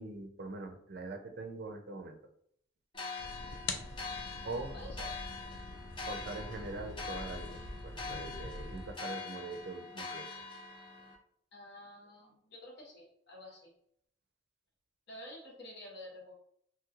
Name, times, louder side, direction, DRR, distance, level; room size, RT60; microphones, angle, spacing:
voice 1, 0.0-2.2 4.4-4.7 6.1-10.3, right 3 dB, 55° right, 5 dB, 0.4 m, -43 dB
sound 1, 2.9-11.1, left 4 dB, 25° left, 0.5 m, -44 dB
sound 2, 3.2-8.9, left 3 dB, 80° left, 0.5 m, -44 dB
voice 2, 11.5-13.7 15.1-16.4, left 1 dB, 60° left, -2 dB, 1.0 m, -50 dB
3.0 x 2.9 x 2.4 m, 0.67 s
head